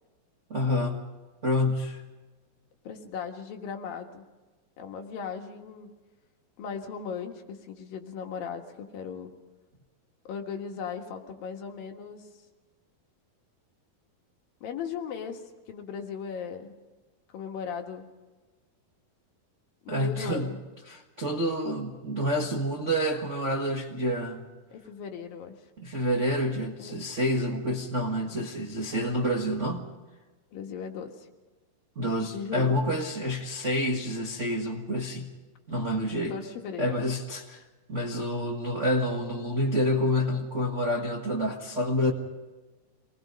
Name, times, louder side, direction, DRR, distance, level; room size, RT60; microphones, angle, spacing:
voice 1, 0.5-1.1 1.4-2.0 19.9-20.5 20.9-24.5 25.8-29.9 31.9-35.3 35.7-36.3 36.8-37.6 37.9-42.1, equal, 60° right, -1 dB, 0.7 m, -28 dB
voice 2, 2.8-4.2 4.8-5.9 6.6-9.3 10.2-12.3 14.6-15.4 15.7-16.7 17.3-18.0 19.8-20.6 24.7-25.5 26.8-27.0 30.5-31.3 32.3-32.8 36.1-37.0, left 6 dB, 75° left, 4 dB, 3.3 m, -37 dB
27.0 x 20.0 x 5.3 m, 1.2 s
omnidirectional pair, 4.3 m